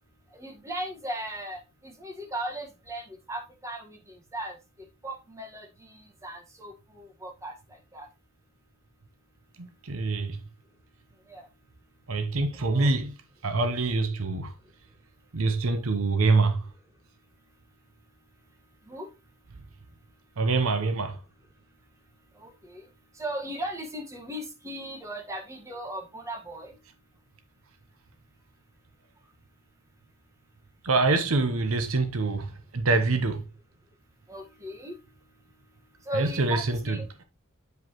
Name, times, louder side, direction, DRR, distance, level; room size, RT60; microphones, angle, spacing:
voice 1, 0.3-4.5 5.0-8.1 11.3-11.5 12.5-12.9 18.9-19.1 22.3-22.9 23.1-26.8 34.3-35.0 36.0-37.1, right 1 dB, 15° right, 1.4 m, -37 dB
voice 2, 9.6-10.4 12.1-13.1 13.4-14.5 15.3-16.6 20.4-21.2 30.8-33.4 36.1-37.0, right 3 dB, 75° right, 0.8 m, -25 dB
8.0 x 5.0 x 2.9 m
head